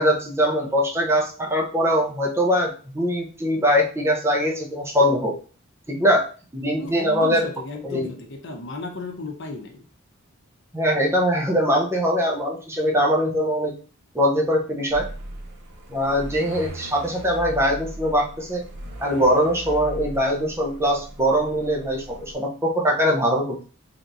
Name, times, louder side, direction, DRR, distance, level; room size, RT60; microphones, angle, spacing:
voice 1, 0.0-5.4 5.9-6.3 6.5-7.5 7.8-8.1 10.7-13.7 14.1-15.1 15.9-18.6 19.0-23.6, equal, 10° right, -1 dB, 0.6 m, -22 dB
voice 2, 6.8-9.9, left 3 dB, 60° left, 3 dB, 0.8 m, -35 dB
sound 1, 14.9-22.3, right 1 dB, 55° right, 0.6 m, -38 dB
3.3 x 2.9 x 2.6 m, 0.38 s
head